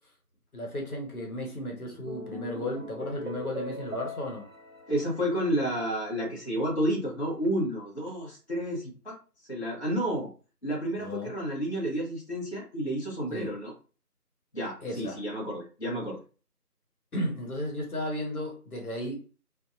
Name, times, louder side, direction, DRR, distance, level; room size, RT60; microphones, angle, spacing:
voice 1, 0.5-4.4 11.0-11.3 13.3-13.5 14.8-15.2 17.1-19.2, left 1 dB, 65° left, 0 dB, 1.0 m, -34 dB
sound 1, 1.8-6.4, equal, 55° right, 0.6 m, -41 dB
voice 2, 4.9-9.2 9.5-10.3 10.6-13.7 14.5-16.2, right 1 dB, 45° left, -5 dB, 0.7 m, -30 dB
2.5 x 2.4 x 2.4 m, 0.36 s
figure-of-eight pair, 180°, 48 cm